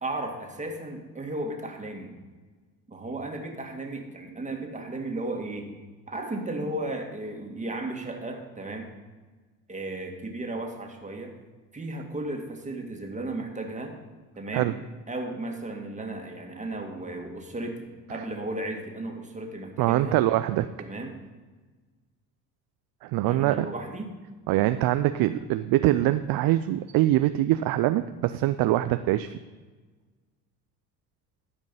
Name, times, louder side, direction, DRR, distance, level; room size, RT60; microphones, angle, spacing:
voice 1, 0.0-2.1 2.9-5.7 6.1-8.9 9.7-11.4 11.7-14.0 14.4-14.7 15.1-20.2 20.8-21.2 23.2-24.1, right 2 dB, 15° right, 2 dB, 2.0 m, -35 dB
voice 2, 19.8-20.7 23.0-23.7 24.5-29.4, right 15 dB, 50° right, 11 dB, 0.5 m, -23 dB
13.0 x 5.2 x 5.5 m, 1.3 s
hypercardioid pair, 70°, 45 cm